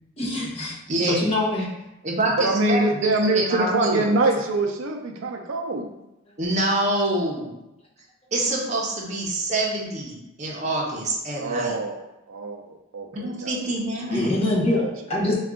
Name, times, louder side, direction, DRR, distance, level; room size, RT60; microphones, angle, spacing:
voice 1, 0.2-0.8 1.1-1.7 14.1-15.3, left 1 dB, 30° left, -4 dB, 0.9 m, -24 dB
voice 2, 0.9-1.2 2.0-4.1 6.4-7.5 8.3-11.8 13.1-14.4, right 1 dB, 35° right, -2 dB, 0.7 m, -26 dB
voice 3, 2.4-5.9 11.4-13.6 14.7-14.9 15.2-15.3, right 2 dB, 85° right, 3 dB, 0.4 m, -24 dB
3.6 x 2.3 x 3.6 m, 0.92 s
head